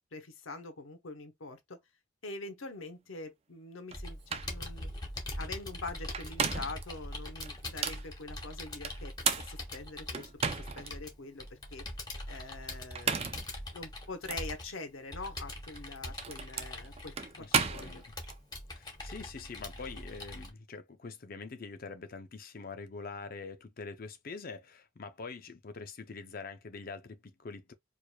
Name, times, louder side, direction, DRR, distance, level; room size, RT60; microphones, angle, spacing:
voice 1, 0.1-1.8 2.2-4.9 5.4-9.1 9.4-11.8 12.3-13.3 13.7-18.0, left 3 dB, 85° left, 0.9 m, -44 dB
Computer keyboard, 3.9-20.5, left 1 dB, 20° left, 1.0 m, -42 dB
sound 1, 3.9-4.0 4.3-4.6 6.0-6.8 7.4-8.1 8.8-10.9 11.4-11.5 12.8-13.5 14.3-14.4 15.6-18.4, right 6 dB, 30° right, 0.4 m, -34 dB
voice 2, 17.4-18.0 18.7-27.7, left 4 dB, 45° left, 0.6 m, -44 dB
4.7 x 2.5 x 2.3 m
head